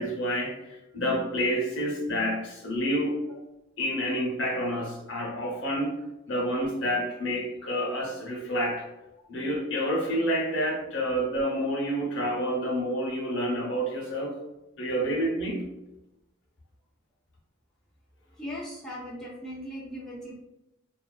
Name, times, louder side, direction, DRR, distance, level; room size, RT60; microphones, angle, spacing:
voice 1, 0.0-3.2 3.8-8.9 9.3-14.4 14.8-15.6, equal, 55° left, -1 dB, 0.7 m, -29 dB
voice 2, 18.4-20.3, equal, 5° left, -6 dB, 0.3 m, -38 dB
2.4 x 2.3 x 2.2 m, 0.95 s
head